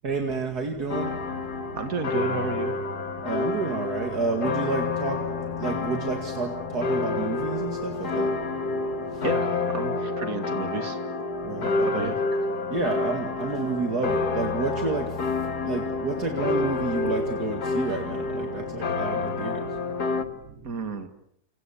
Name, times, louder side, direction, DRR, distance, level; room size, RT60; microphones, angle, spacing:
voice 1, 0.0-1.1 3.2-8.6 9.1-9.3 11.4-12.1 12.7-19.8 20.2-20.3 20.5-20.6, right 4 dB, 80° right, 4 dB, 2.9 m, -30 dB
sound 1, 0.9-20.2, left 3 dB, 85° left, 2.4 m, -29 dB
voice 2, 1.7-2.7 9.2-11.0 11.6-12.2 20.6-21.1, right 4 dB, 65° right, 7 dB, 2.5 m, -32 dB
29.5 x 28.0 x 7.2 m, 0.72 s
omnidirectional pair, 1.6 m